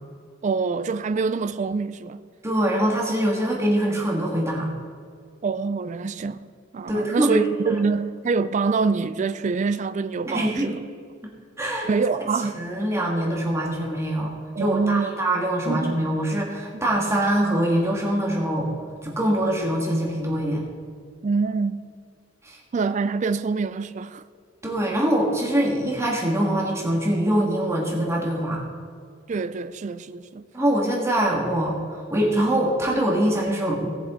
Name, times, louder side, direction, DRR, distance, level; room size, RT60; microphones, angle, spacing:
voice 1, 0.4-2.2 5.4-6.4 6.7-10.8 11.9-12.6 14.6-15.1 15.7-16.0 21.2-21.9 22.7-24.2 29.3-30.4, right 4 dB, 40° right, 0.4 m, -25 dB
voice 2, 2.4-4.7 6.9-7.4 7.7-7.8 10.3-10.7 11.6-11.9 12.6-18.7 19.0-20.6 22.4-22.6 24.6-28.6 30.5-33.9, right 1 dB, 15° right, 1.8 m, -23 dB
18.0 x 7.4 x 3.7 m
head